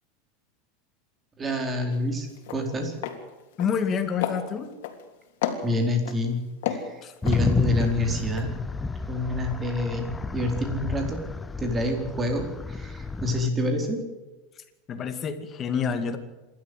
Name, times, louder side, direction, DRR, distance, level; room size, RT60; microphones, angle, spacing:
voice 1, 1.4-2.9 5.6-6.4 6.7-8.5 9.1-11.2 11.6-14.0, left 1 dB, 20° right, 4 dB, 4.3 m, -27 dB
sound 1, 1.9-2.1 2.4-2.6 3.0-3.2 3.5-3.9 4.2-5.0 5.4-6.2 6.6-7.9 8.3-8.4, left 10 dB, 75° left, 3.3 m, -31 dB
voice 2, 3.6-4.7 7.0-7.1 14.9-16.2, left 6 dB, 30° left, 8 dB, 2.3 m, -28 dB
sound 2, 7.2-13.5, left 3 dB, 10° left, 0.9 m, -31 dB
27.0 x 13.0 x 7.9 m, 1.1 s
supercardioid pair, 145°, 0 cm